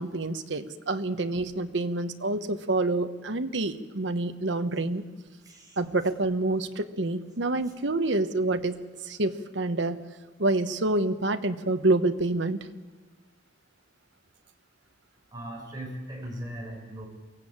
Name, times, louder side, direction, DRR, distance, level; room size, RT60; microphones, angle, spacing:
voice 1, 0.0-5.0 5.8-10.0 10.4-12.6, right 2 dB, 75° right, 9 dB, 1.1 m, -27 dB
voice 2, 5.4-5.8 15.3-17.1, right 1 dB, 20° right, -1 dB, 6.0 m, -38 dB
23.0 x 16.0 x 8.8 m, 1.3 s
head